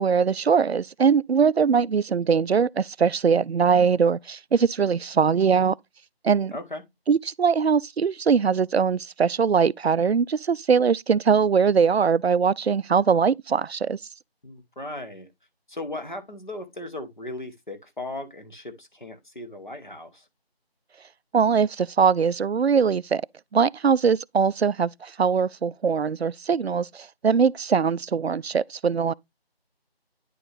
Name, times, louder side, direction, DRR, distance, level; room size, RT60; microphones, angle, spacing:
voice 1, 0.0-5.7 6.2-6.5 7.1-14.0 21.3-23.2 23.5-29.1, right 6 dB, 80° right, 0.5 m, -21 dB
voice 2, 6.5-6.8 14.4-15.3 15.7-20.3, left 2 dB, 50° left, 1.8 m, -37 dB
9.9 x 4.7 x 3.4 m
figure-of-eight pair, 175°, 31 cm